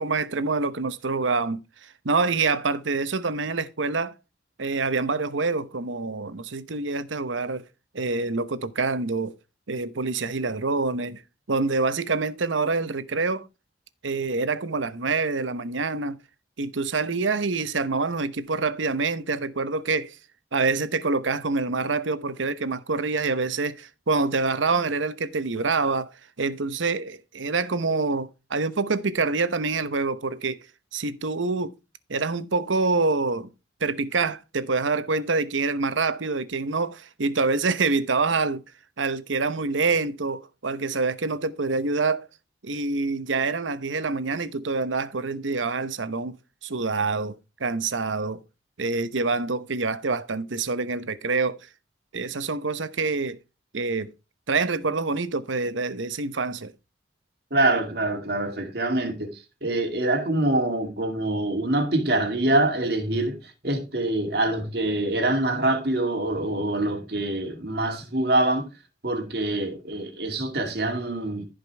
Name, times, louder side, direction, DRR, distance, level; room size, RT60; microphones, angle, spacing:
voice 1, 0.0-4.1 4.6-7.7 7.9-9.3 9.7-11.2 11.5-13.5 14.0-16.2 16.6-20.2 20.5-30.6 30.9-31.7 32.1-33.5 33.8-38.6 39.0-42.3 42.6-46.4 46.6-48.4 48.8-51.6 52.1-53.4 53.7-54.1 54.5-56.7, right 3 dB, 90° right, 0.9 m, -26 dB
voice 2, 57.5-68.7 69.0-71.5, right 2 dB, 55° right, 2.4 m, -25 dB
15.0 x 5.2 x 3.4 m
head